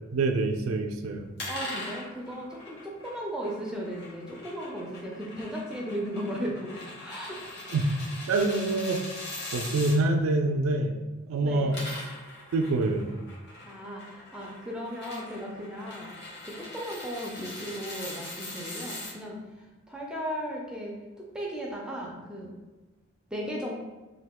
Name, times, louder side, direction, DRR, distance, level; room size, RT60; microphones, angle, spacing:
voice 1, 0.1-1.3 7.7-7.8 8.3-9.0 9.5-11.0 11.3-11.8 12.5-13.2, right 2 dB, 80° right, 5 dB, 0.4 m, -26 dB
sound 1, 1.4-10.0 11.5-19.1, left 2 dB, 55° left, 1.0 m, -41 dB
voice 2, 1.5-8.0 11.4-11.8 13.6-16.1 16.4-22.5 23.3-23.7, equal, 5° right, -2 dB, 0.4 m, -36 dB
2.9 x 2.7 x 3.5 m, 1.2 s
head